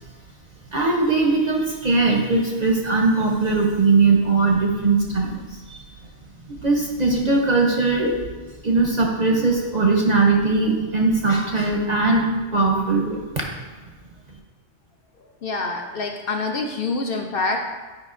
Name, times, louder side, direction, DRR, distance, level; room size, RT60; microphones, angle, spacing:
voice 1, 0.7-5.3 5.7-5.8 6.6-8.2 8.6-13.2, right 3 dB, 45° right, 0 dB, 0.6 m, -20 dB
voice 2, 15.4-17.6, left 3 dB, 60° left, 3 dB, 0.7 m, -26 dB
9.4 x 5.0 x 2.5 m, 1.3 s
omnidirectional pair, 1.3 m